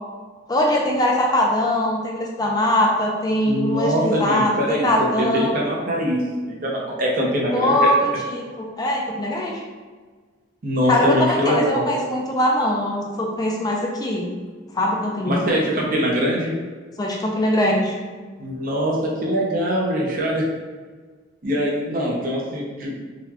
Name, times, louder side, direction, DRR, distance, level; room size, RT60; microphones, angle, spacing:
voice 1, 0.5-5.5 7.5-9.6 10.9-14.3 14.7-15.5 17.0-17.9, left 1 dB, 20° left, -1 dB, 0.4 m, -21 dB
voice 2, 3.4-7.9 10.6-11.8 15.3-16.6 18.4-20.4 21.4-23.1, equal, 50° right, -2 dB, 0.7 m, -23 dB
3.9 x 2.2 x 2.9 m, 1.4 s
head